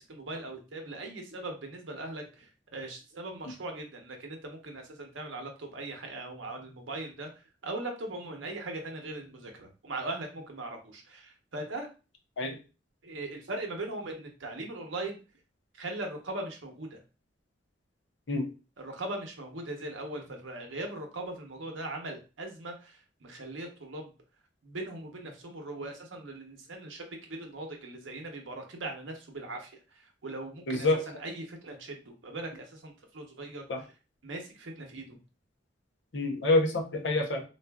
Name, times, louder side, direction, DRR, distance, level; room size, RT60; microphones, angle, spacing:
voice 1, 0.1-11.9 13.0-15.2 15.8-17.0 18.8-24.1 24.6-29.7 30.0-33.9 34.2-35.2, right 2 dB, 85° right, 3 dB, 0.8 m, -40 dB
voice 2, 30.7-31.0 33.7-33.8 36.1-37.4, left 2 dB, 70° left, 3 dB, 0.7 m, -27 dB
3.9 x 2.4 x 2.2 m, 0.32 s
head